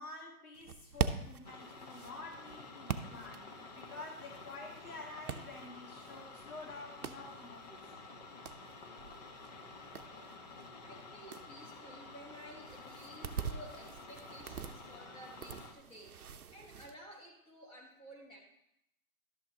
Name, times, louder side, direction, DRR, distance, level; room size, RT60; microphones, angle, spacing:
voice 1, 0.0-3.5 3.7-7.9, left 3 dB, 80° left, 0 dB, 1.9 m, -49 dB
sound 1, 0.5-16.9, right 7 dB, 90° right, 0.6 m, -44 dB
sound 2, 1.4-15.7, left 3 dB, 30° left, 0.8 m, -51 dB
voice 2, 10.0-10.4 10.8-16.2 16.5-18.4, right 1 dB, 10° left, -1 dB, 1.2 m, -54 dB
11.5 x 7.2 x 2.8 m, 0.80 s
figure-of-eight pair, 135°, 43 cm